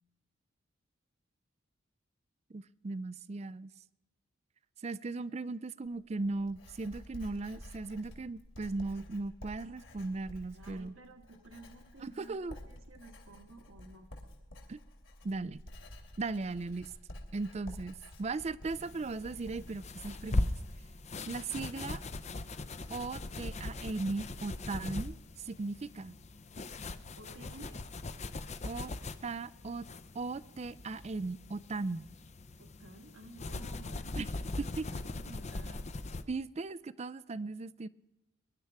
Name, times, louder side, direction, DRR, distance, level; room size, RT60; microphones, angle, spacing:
voice 1, 2.5-3.7 4.8-10.9 12.0-12.6 14.7-14.8 15.2-15.6 16.2-16.9 17.3-20.5 21.3-22.0 22.9-25.2 25.4-26.1 28.6-28.9 29.2-29.8 30.1-32.1 34.1-34.3 34.6-34.8 36.3-37.9, right 3 dB, 30° right, 16 dB, 0.4 m, -37 dB
Writing, 5.8-21.2, left 1 dB, 70° left, 3.0 m, -51 dB
voice 2, 10.5-14.1 27.2-27.8 32.6-34.7 34.9-35.9, right 2 dB, 80° right, 5 dB, 1.5 m, -54 dB
sound 1, 18.7-36.2, left 2 dB, 35° left, 0.6 m, -40 dB
22.5 x 11.5 x 3.5 m, 0.99 s
head